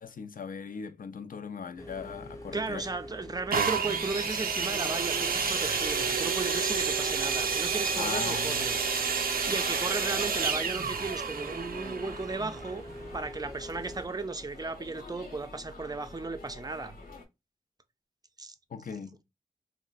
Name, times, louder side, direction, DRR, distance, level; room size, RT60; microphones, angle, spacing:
voice 1, 0.0-2.9 8.0-8.7 18.7-19.2, left 6 dB, 70° left, 0.4 m, -39 dB
sound 1, 1.8-14.1, equal, 20° left, 0.7 m, -44 dB
voice 2, 2.5-8.8 9.5-12.8 13.1-17.0 18.4-18.5, right 3 dB, 25° right, 0.4 m, -35 dB
sound 2, 3.5-13.2 13.9-14.0, right 5 dB, 85° right, 0.5 m, -30 dB
sound 3, 4.8-17.3, left 3 dB, 90° left, 1.0 m, -49 dB
4.2 x 2.1 x 2.3 m
wide cardioid pair, 70°, 15 cm